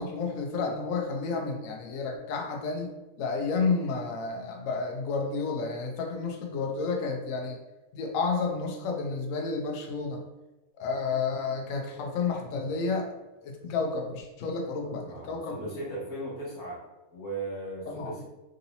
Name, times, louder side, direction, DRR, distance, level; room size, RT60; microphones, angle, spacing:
voice 1, 0.0-2.9 3.2-7.6 7.9-10.2 10.8-13.1 13.4-15.7 17.9-18.1, left 4 dB, 80° left, 2 dB, 0.7 m, -31 dB
voice 2, 14.8-16.8 17.1-18.2, right 2 dB, 55° left, -5 dB, 1.8 m, -37 dB
3.7 x 2.8 x 2.6 m, 1.0 s
omnidirectional pair, 2.0 m